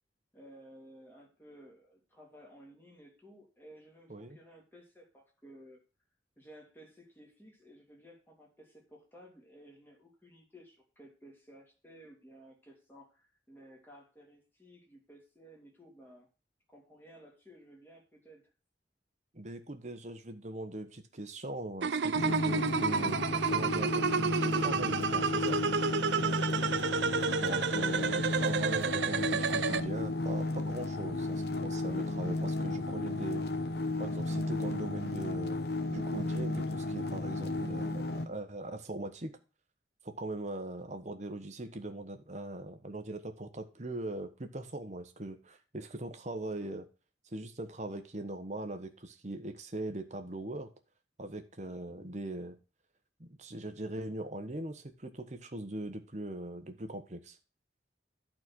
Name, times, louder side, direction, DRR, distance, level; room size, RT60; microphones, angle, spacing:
voice 1, 0.3-5.8 6.4-16.3 16.7-18.5 31.9-32.0 51.6-51.8, equal, 10° left, -2 dB, 3.0 m, -56 dB
voice 2, 19.3-25.6 27.4-33.5 34.0-35.6 35.9-39.4 40.0-46.9 47.3-50.7 51.2-52.6 53.2-57.4, right 1 dB, 40° right, 7 dB, 1.2 m, -40 dB
sound 1, 21.8-29.8, right 6 dB, 85° right, 0.5 m, -30 dB
sound 2, 22.1-38.3, left 2 dB, 65° left, 0.9 m, -34 dB
11.5 x 4.4 x 6.2 m, 0.34 s
head